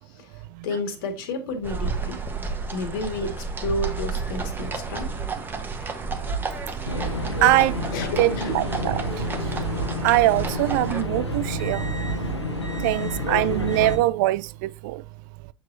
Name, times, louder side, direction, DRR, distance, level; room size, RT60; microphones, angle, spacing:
voice 1, 0.1-2.2 2.7-5.2 5.8-5.9 7.9-8.9, left 2 dB, 55° left, 1.8 m, -31 dB
sound 1, 1.6-11.0, right 4 dB, 15° right, 1.2 m, -31 dB
sound 2, 6.9-14.0, left 1 dB, 85° left, 1.4 m, -29 dB
voice 2, 7.4-7.8 8.2-9.0 9.5-9.6 10.0-11.9 12.8-15.0, right 18 dB, 45° right, 0.4 m, -22 dB
7.8 x 6.2 x 2.7 m
figure-of-eight pair, 85°, 14 cm